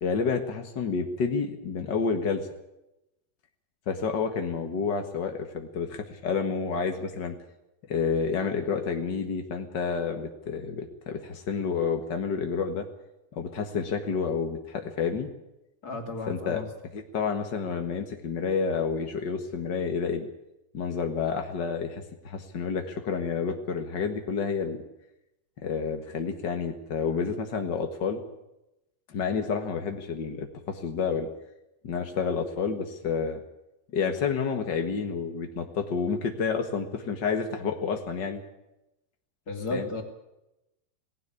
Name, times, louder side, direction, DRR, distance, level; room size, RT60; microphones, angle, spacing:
voice 1, 0.0-2.5 3.9-7.3 7.9-12.9 13.3-15.3 16.3-16.6 16.9-20.3 20.7-24.8 25.6-28.2 29.1-31.3 31.8-33.4 33.9-38.4 39.7-39.9, left 5 dB, 70° left, 5 dB, 1.0 m, -29 dB
voice 2, 15.8-16.7 39.5-40.0, left 3 dB, 25° left, 4 dB, 2.8 m, -33 dB
19.0 x 17.0 x 8.5 m, 0.91 s
omnidirectional pair, 4.7 m